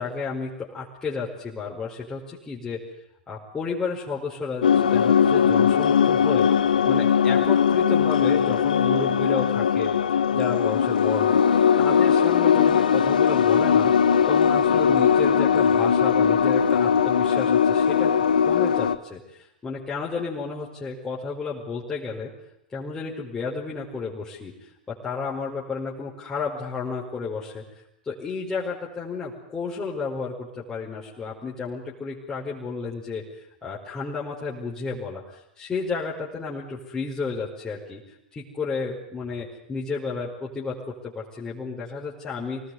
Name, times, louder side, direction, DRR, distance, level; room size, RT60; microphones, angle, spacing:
voice 1, 0.0-2.8 3.3-6.5 6.9-11.3 11.8-13.9 14.3-18.1 18.5-22.3 22.7-27.6 28.0-42.6, left 4 dB, 15° left, -5 dB, 5.0 m, -32 dB
sound 1, 4.6-19.0, left 7 dB, 70° left, 1.3 m, -20 dB
24.5 x 19.5 x 9.6 m, 0.81 s
figure-of-eight pair, 95°, 5 cm